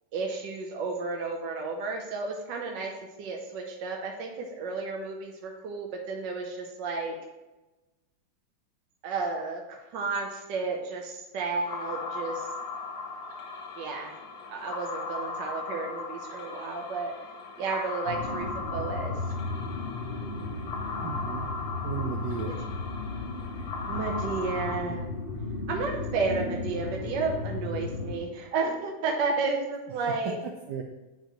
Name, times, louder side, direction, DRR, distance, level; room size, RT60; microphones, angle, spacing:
voice 1, 0.1-2.9 3.2-7.2 9.0-12.5 13.8-14.1 14.5-17.1 17.6-19.2 23.9-25.0 25.7-30.3, right 4 dB, 65° right, 0 dB, 1.3 m, -32 dB
sound 1, 11.7-24.8, left 3 dB, 60° left, 1.1 m, -38 dB
sound 2, 18.1-28.2, left 3 dB, 40° left, 0.8 m, -35 dB
voice 2, 21.0-21.5 21.8-22.6 30.2-30.8, right 7 dB, 90° right, 3 dB, 0.9 m, -35 dB
9.0 x 4.7 x 3.0 m, 1.1 s
omnidirectional pair, 2.4 m